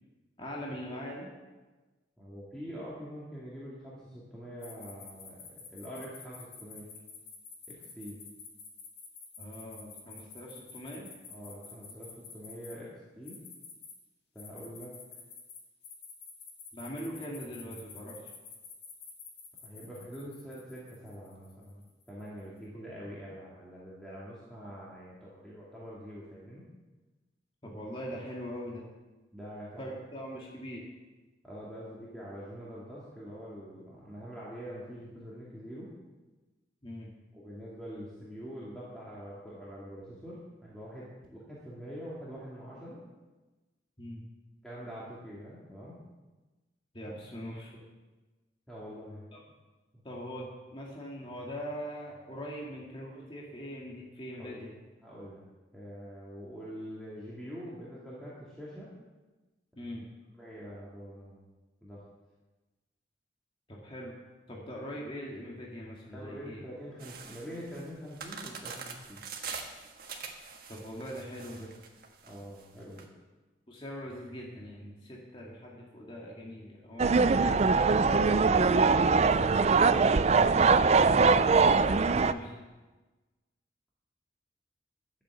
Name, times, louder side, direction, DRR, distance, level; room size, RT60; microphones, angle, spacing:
voice 1, 0.4-1.3 9.4-11.1 16.7-18.3 27.6-28.8 29.8-30.8 36.8-37.1 44.0-44.2 46.9-47.7 49.3-49.4 50.0-54.7 59.8-60.1 63.7-64.2 64.5-66.6 70.7-71.7 73.7-79.1 82.2-82.6, equal, 30° left, -3 dB, 2.0 m, -42 dB
voice 2, 2.2-5.4 5.7-6.9 7.7-8.2 11.3-13.4 14.3-14.9 19.6-26.7 29.3-29.8 31.4-35.9 37.3-41.1 41.5-43.0 44.6-46.0 47.0-47.2 48.7-49.3 49.9-50.0 54.4-54.6 55.0-55.4 55.7-58.9 60.4-61.4 61.8-62.0 66.1-69.3 72.2-73.1 80.4-81.5, equal, 5° left, -8 dB, 2.3 m, -44 dB
sound 1, 4.6-12.7 13.3-13.9 14.4-22.2, left 5 dB, 60° left, 2.3 m, -49 dB
sound 2, 67.0-73.0, right 5 dB, 50° right, 1.5 m, -44 dB
sound 3, 77.0-82.3, right 4 dB, 35° right, 0.4 m, -22 dB
12.0 x 7.4 x 8.0 m, 1.2 s
head